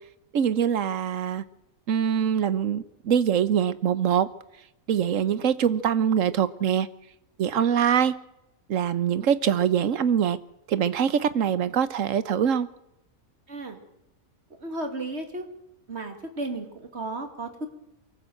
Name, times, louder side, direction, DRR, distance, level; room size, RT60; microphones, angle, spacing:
voice 1, 0.3-1.4 1.9-4.3 4.9-6.9 7.4-8.1 8.7-10.4 10.7-12.7, right 8 dB, 65° right, 1.3 m, -23 dB
voice 2, 13.5-13.8 14.6-15.5 15.9-17.7, right 2 dB, 50° right, 2.7 m, -34 dB
23.5 x 14.0 x 7.8 m
omnidirectional pair, 1.5 m